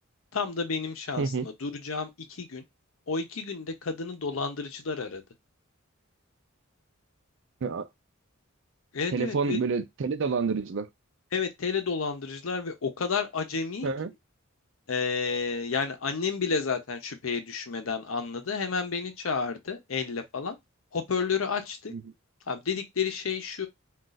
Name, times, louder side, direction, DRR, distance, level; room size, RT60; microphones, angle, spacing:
voice 1, 0.3-2.6 3.1-5.2 8.9-9.6 11.3-13.9 14.9-20.6 20.9-21.9 22.5-23.7, left 5 dB, 70° left, 0.7 m, -31 dB
voice 2, 1.2-1.5 7.6-7.9 9.1-10.9 13.8-14.1 21.9-22.0, right 4 dB, 60° right, 0.5 m, -28 dB
2.4 x 2.4 x 3.9 m
head